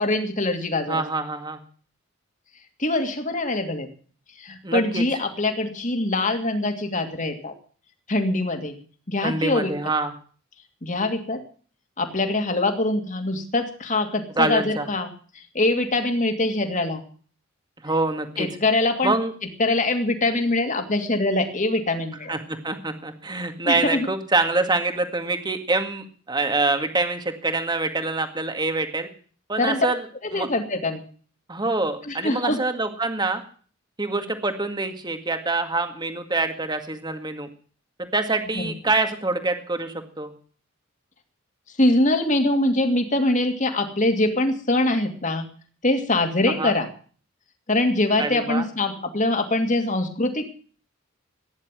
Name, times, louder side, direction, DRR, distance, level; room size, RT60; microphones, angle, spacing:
voice 1, 0.0-1.0 2.8-3.9 4.4-7.5 8.1-8.7 9.1-9.7 10.8-11.4 12.0-15.1 15.5-17.0 18.4-19.2 19.6-22.3 23.6-24.1 29.6-29.9 30.2-31.0 32.1-32.6 41.8-45.5 45.8-46.9 47.7-50.4, left 2 dB, 35° left, 5 dB, 2.6 m, -23 dB
voice 2, 0.9-1.6 4.6-5.0 9.2-10.1 14.4-14.9 17.8-18.5 19.0-19.3 22.3-29.1 29.5-30.0 30.3-30.5 31.5-33.4 34.0-37.5 38.0-40.3 46.5-46.8 48.2-48.7, right 3 dB, 20° right, 7 dB, 2.0 m, -25 dB
16.5 x 10.5 x 7.6 m, 0.44 s
head